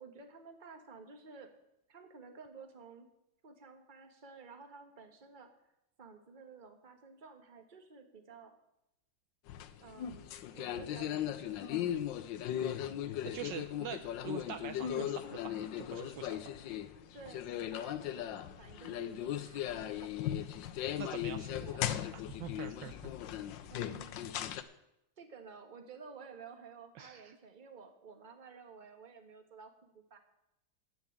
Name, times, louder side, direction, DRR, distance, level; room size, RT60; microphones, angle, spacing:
voice 1, 0.0-1.5 1.9-3.1 3.4-5.5 6.0-8.6 9.8-11.7 17.1-17.4 17.7-20.3 21.5-21.8 23.7-24.2 25.2-30.2, right 5 dB, 25° right, 6 dB, 1.3 m, -53 dB
sound 1, 9.5-24.6, left 11 dB, 70° left, 1.3 m, -38 dB
voice 2, 13.2-16.7 21.0-23.1 27.0-27.4, right 9 dB, 70° right, 9 dB, 1.2 m, -45 dB
10.5 x 8.8 x 7.3 m, 0.85 s
omnidirectional pair, 2.2 m